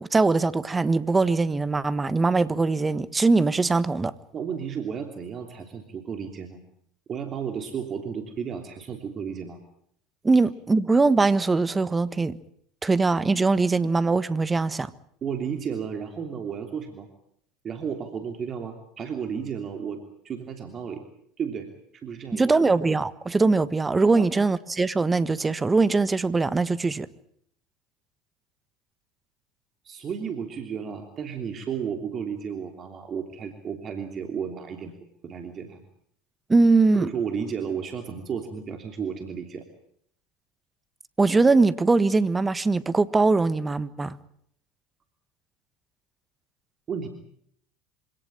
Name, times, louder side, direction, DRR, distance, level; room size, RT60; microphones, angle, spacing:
voice 1, 0.0-4.1 10.2-12.4 12.8-14.9 22.3-27.1 36.5-37.1 41.2-44.2, right 3 dB, 15° right, 1.4 m, -21 dB
voice 2, 4.3-6.6 7.1-9.6 15.2-17.1 17.6-21.0 21.4-22.5 24.1-24.3 29.8-35.0 35.2-35.8 36.9-39.6 46.9-47.1, right 7 dB, 35° right, 3.1 m, -33 dB
25.5 x 18.0 x 9.0 m
hypercardioid pair, 75°, 0 cm